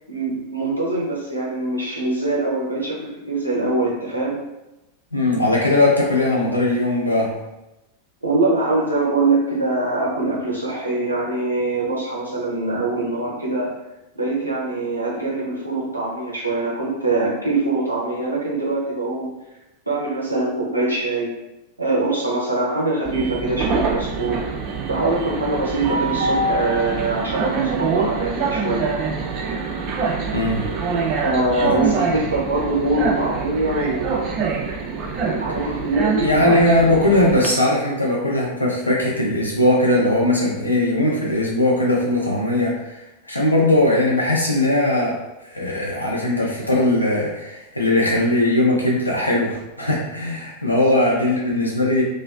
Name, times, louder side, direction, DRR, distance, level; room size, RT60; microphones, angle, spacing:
voice 1, 0.1-4.4 8.2-13.7 14.2-19.3 19.9-21.4 21.8-24.4 24.9-28.9 31.2-34.2 35.3-36.3, right 2 dB, 85° right, -4 dB, 0.6 m, -23 dB
voice 2, 5.1-7.4 30.3-30.7 31.6-31.7 36.2-43.0 43.2-45.2 45.4-52.0, left 1 dB, 85° left, -3 dB, 0.4 m, -19 dB
Train, 23.0-37.5, right 4 dB, 35° right, 0.4 m, -25 dB
2.3 x 2.2 x 2.3 m, 0.95 s
figure-of-eight pair, 90°, 0 cm